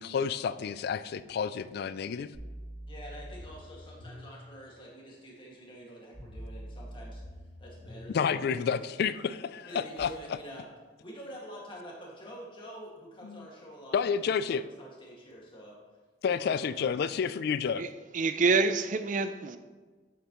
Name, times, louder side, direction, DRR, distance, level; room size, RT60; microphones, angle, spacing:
voice 1, 0.0-2.3 8.1-10.4 13.2-13.5 13.9-14.6 16.2-17.8, left 6 dB, 60° left, 0.3 m, -30 dB
sound 1, 2.3-4.3 6.1-8.1 10.0-10.1, equal, 5° right, 2.7 m, -44 dB
voice 2, 2.9-7.2 7.6-8.8 9.6-10.7 11.0-14.0 14.5-15.8 16.3-17.1, equal, 30° left, 2.0 m, -47 dB
voice 3, 18.1-19.6, right 4 dB, 45° right, 0.5 m, -26 dB
8.9 x 7.4 x 3.0 m
head